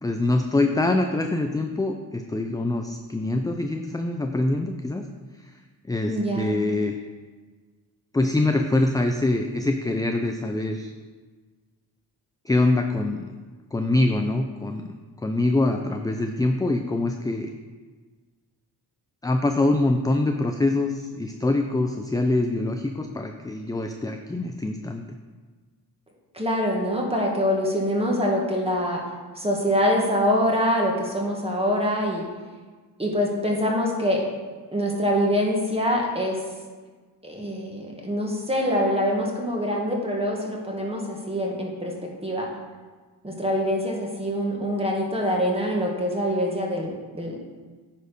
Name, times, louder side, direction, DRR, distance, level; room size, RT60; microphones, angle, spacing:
voice 1, 0.0-5.0 5.9-7.0 8.1-10.9 12.5-13.3 13.7-14.9 15.2-17.5 19.2-25.0, left 2 dB, 10° left, 5 dB, 0.4 m, -24 dB
voice 2, 6.0-6.5 26.3-29.0 29.4-32.2 33.0-34.2 34.7-36.4 37.2-41.9 42.2-42.5 43.2-47.4, equal, 15° right, -1 dB, 1.8 m, -24 dB
9.3 x 4.4 x 5.1 m, 1.4 s
cardioid pair, 85°, 41 cm